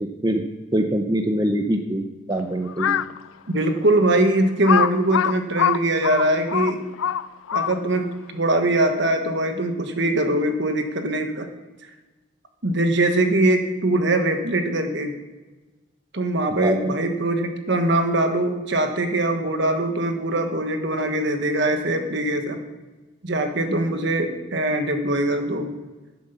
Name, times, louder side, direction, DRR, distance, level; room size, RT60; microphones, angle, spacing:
voice 1, 0.7-3.0 16.6-16.9, right 1 dB, 20° right, 5 dB, 0.8 m, -23 dB
Crow, 2.7-3.2 3.8-3.9 4.6-8.0, left 9 dB, 85° left, 0.4 m, -23 dB
voice 2, 3.5-6.9 7.5-11.5 12.6-15.1 16.1-22.6 23.2-25.7, right 1 dB, 60° right, 6 dB, 1.3 m, -22 dB
11.5 x 7.8 x 6.8 m, 1.2 s
head